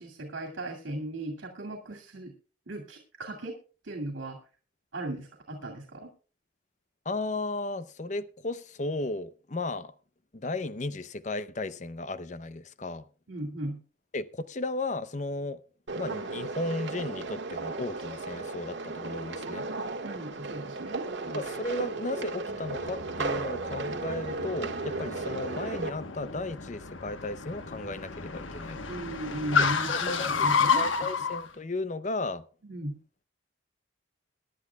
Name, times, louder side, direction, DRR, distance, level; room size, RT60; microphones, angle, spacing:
voice 1, 0.0-2.3 2.7-3.6 3.8-4.4 4.9-6.1 13.3-13.8 20.0-21.4 28.9-30.8 32.6-33.0, right 1 dB, 85° right, 2.5 m, -37 dB
voice 2, 7.1-9.9 10.3-13.0 14.1-15.6 16.0-19.7 21.3-28.8 29.6-30.5 30.8-32.4, left 2 dB, 40° left, 0.6 m, -35 dB
sound 1, 15.9-25.9, right 3 dB, 70° right, 1.8 m, -35 dB
Car, 22.5-31.4, left 5 dB, 85° left, 1.2 m, -31 dB
22.5 x 10.5 x 2.3 m
head